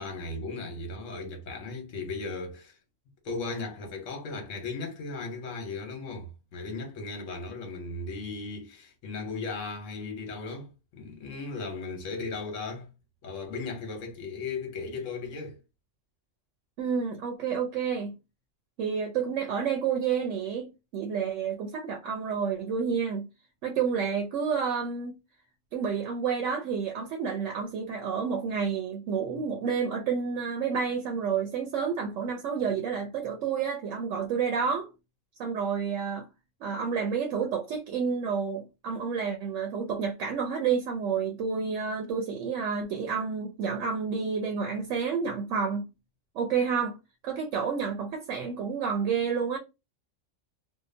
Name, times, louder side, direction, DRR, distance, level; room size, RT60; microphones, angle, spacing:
voice 1, 0.0-2.8 3.2-12.9 13.2-15.6, left 3 dB, 75° left, 1.2 m, -36 dB
voice 2, 16.8-18.1 18.8-20.7 20.9-23.3 23.6-25.1 25.7-34.9 35.4-36.3 36.6-45.8 46.3-47.0 47.2-49.6, right 6 dB, 75° right, 0.9 m, -29 dB
2.8 x 2.2 x 2.6 m
omnidirectional pair, 1.3 m